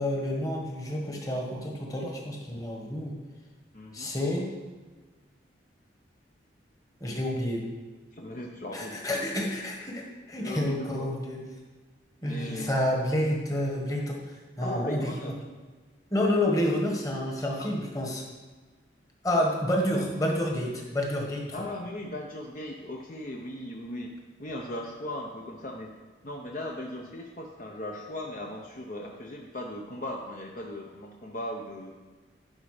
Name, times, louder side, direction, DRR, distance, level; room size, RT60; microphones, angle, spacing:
voice 1, 0.0-3.2 3.9-4.5 7.0-7.6 8.7-11.4 12.2-15.1 16.1-18.2 19.2-21.4, left 1 dB, 20° left, -1 dB, 1.4 m, -29 dB
voice 2, 3.7-4.1 8.1-9.0 9.3-9.4 10.4-11.1 12.2-12.8 14.6-15.3 21.5-24.1 24.4-25.9 26.2-31.9, left 1 dB, 45° left, 0 dB, 0.7 m, -38 dB
11.5 x 5.1 x 4.9 m, 1.4 s
head